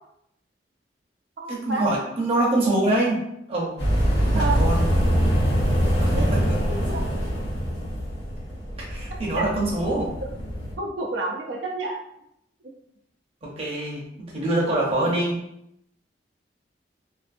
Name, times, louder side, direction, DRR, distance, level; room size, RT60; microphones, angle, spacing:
voice 1, 1.5-3.2 3.5-3.7 4.2-4.8 6.0-6.4 8.8-10.1 13.4-14.1 14.3-15.4, right 1 dB, 35° right, -4 dB, 0.7 m, -24 dB
sound 1, 3.8-10.7, equal, 80° left, 1.0 m, -24 dB
voice 2, 10.8-12.0, right 3 dB, 85° right, -1 dB, 0.5 m, -28 dB
2.5 x 2.5 x 2.5 m, 0.78 s
head